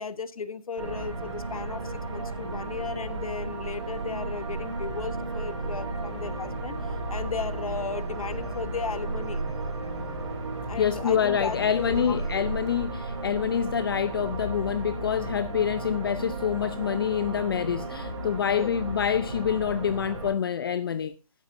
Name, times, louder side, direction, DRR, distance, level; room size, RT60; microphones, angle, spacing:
voice 1, 0.0-9.4 10.7-12.5 18.5-18.7, left 5 dB, 70° left, 1.3 m, -35 dB
sound 1, 0.8-20.3, right 2 dB, 55° right, 4.9 m, -34 dB
voice 2, 10.8-21.1, left 8 dB, 40° left, 0.5 m, -27 dB
12.5 x 11.0 x 2.6 m
hypercardioid pair, 155°, 19 cm